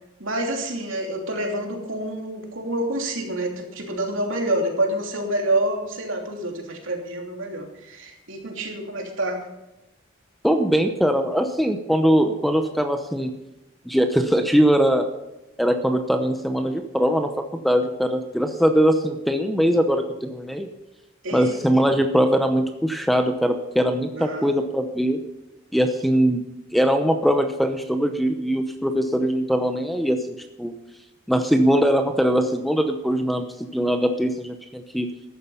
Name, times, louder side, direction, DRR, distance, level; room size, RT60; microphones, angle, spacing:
voice 1, 0.2-9.4 21.2-21.6 24.1-24.5, right 1 dB, 70° right, 2 dB, 3.0 m, -27 dB
voice 2, 10.4-13.3 13.9-15.1 15.6-20.7 21.3-25.2 25.7-26.4 26.7-30.3 30.6-30.7 31.3-35.1, equal, ahead, 6 dB, 0.7 m, -21 dB
14.0 x 11.0 x 5.6 m, 0.95 s
head